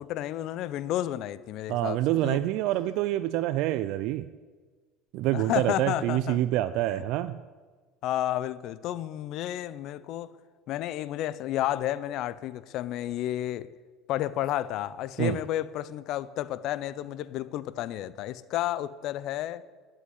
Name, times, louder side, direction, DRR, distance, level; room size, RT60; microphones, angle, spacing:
voice 1, 0.0-2.4 5.3-6.4 6.9-7.0 8.0-10.3 10.7-13.7 14.1-19.6, left 13 dB, 60° left, 16 dB, 0.7 m, -31 dB
voice 2, 1.7-4.3 5.1-7.3 15.2-15.4, right 14 dB, 65° right, 14 dB, 0.5 m, -27 dB
11.5 x 7.7 x 9.7 m, 1.4 s
hypercardioid pair, 85°, 0 cm